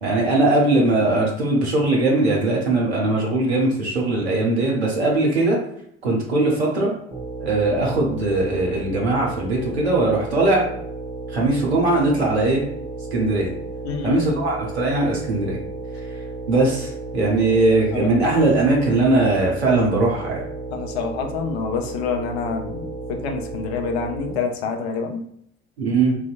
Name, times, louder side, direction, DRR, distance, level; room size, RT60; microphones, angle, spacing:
voice 1, 0.0-5.6 6.0-6.9 7.4-10.6 11.3-12.6 13.1-13.5 14.0-15.6 16.5-20.4 25.8-26.2, right 2 dB, 90° right, -2 dB, 0.5 m, -20 dB
sound 1, 7.1-24.3, right 3 dB, 15° right, 0.7 m, -33 dB
voice 2, 13.8-14.2 17.9-18.1 20.7-25.3, left 5 dB, 75° left, 4 dB, 0.5 m, -27 dB
2.6 x 2.1 x 2.4 m, 0.69 s
figure-of-eight pair, 55°, 32 cm